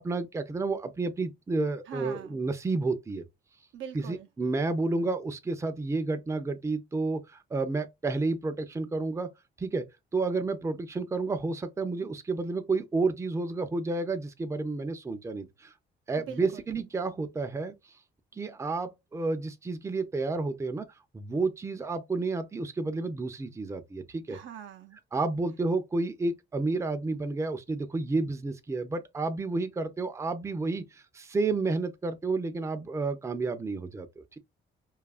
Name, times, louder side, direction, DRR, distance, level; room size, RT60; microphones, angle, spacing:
voice 1, 0.0-3.2 3.9-9.3 9.6-9.8 10.1-15.7 16.1-17.7 18.3-20.9 21.1-24.4 25.1-34.4, right 3 dB, 15° right, 0.4 m, -31 dB
voice 2, 1.9-2.4 3.7-4.3 16.2-16.6 24.3-25.0, right 8 dB, 75° right, 0.5 m, -42 dB
2.7 x 2.4 x 2.3 m
cardioid pair, 90°, 20 cm